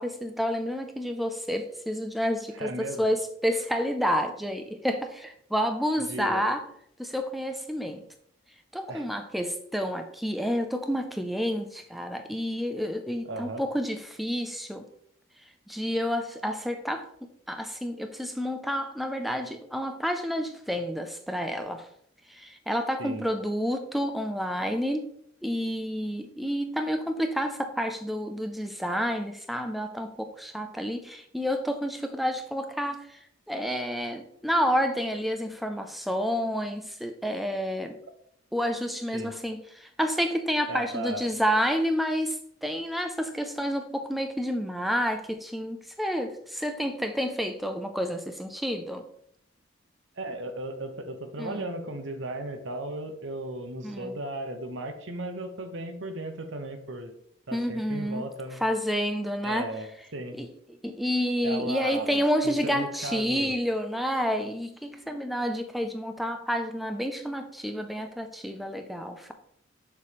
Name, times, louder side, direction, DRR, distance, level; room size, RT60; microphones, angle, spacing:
voice 1, 0.0-6.6 7.0-8.1 8.7-14.8 15.7-17.1 17.5-21.9 22.3-25.1 25.4-38.0 38.5-49.0 51.4-51.7 53.8-54.2 57.5-58.2 58.6-59.7 60.4-69.3, equal, ahead, 6 dB, 0.4 m, -29 dB
voice 2, 2.6-3.0 6.0-6.4 8.9-9.1 13.2-13.6 23.0-23.2 39.1-39.4 40.7-41.3 50.2-57.1 57.5-58.6 59.4-59.9 60.1-60.4 61.4-63.5, right 1 dB, 60° right, 7 dB, 0.9 m, -36 dB
6.7 x 3.2 x 5.0 m, 0.69 s
head